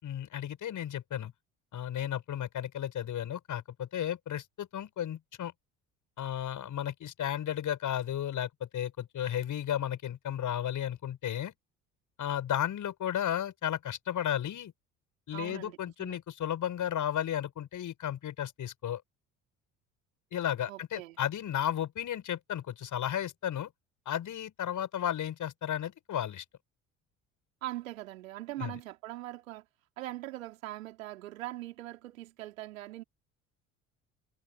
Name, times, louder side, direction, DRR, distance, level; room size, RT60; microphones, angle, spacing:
voice 1, 0.0-1.3 1.7-5.5 6.2-11.5 12.2-14.7 15.3-19.0 20.3-23.7 24.1-26.4 28.6-28.8, left 10 dB, 50° left, 7.4 m, -34 dB
voice 2, 15.3-16.2 20.7-21.2 27.6-29.7 30.0-33.0, right 16 dB, 80° right, 4.4 m, -41 dB
hypercardioid pair, 60°, 39 cm